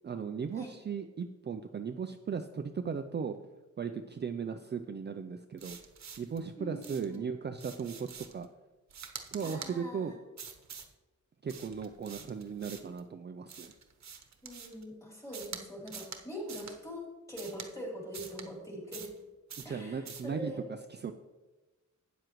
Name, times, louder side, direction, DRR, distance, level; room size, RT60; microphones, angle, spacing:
voice 1, 0.0-3.4 3.8-5.8 6.2-8.5 9.3-10.1 11.4-13.7 19.6-21.1, right 6 dB, 35° right, 7 dB, 0.4 m, -37 dB
sound 1, 5.6-6.4 6.8-7.2 7.6-8.4 8.9-9.7 10.4-10.9 11.5-13.0 13.5-14.8 15.3-15.6 15.9-16.2 16.5-16.8 17.4-17.7 18.1-18.5 18.9-19.2 19.5-19.7 20.1-20.3, right 6 dB, 60° right, 1.0 m, -46 dB
voice 2, 6.6-7.3 9.4-10.2 14.4-19.1 19.6-20.6, equal, 10° left, -2 dB, 3.4 m, -43 dB
12.5 x 9.1 x 3.1 m, 1.1 s
wide cardioid pair, 125°, 31 cm